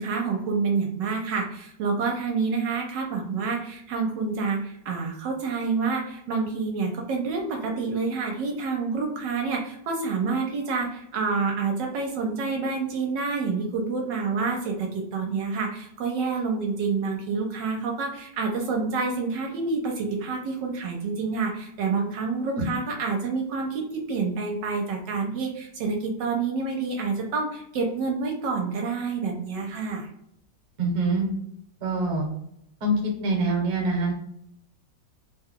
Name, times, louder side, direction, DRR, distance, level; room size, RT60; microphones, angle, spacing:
voice 1, 0.0-30.1, right 4 dB, 80° right, 1 dB, 1.3 m, -28 dB
voice 2, 30.8-31.3 31.8-32.3 32.8-34.2, right 2 dB, 50° right, 0 dB, 1.2 m, -25 dB
3.1 x 2.2 x 3.6 m, 0.76 s
omnidirectional pair, 1.9 m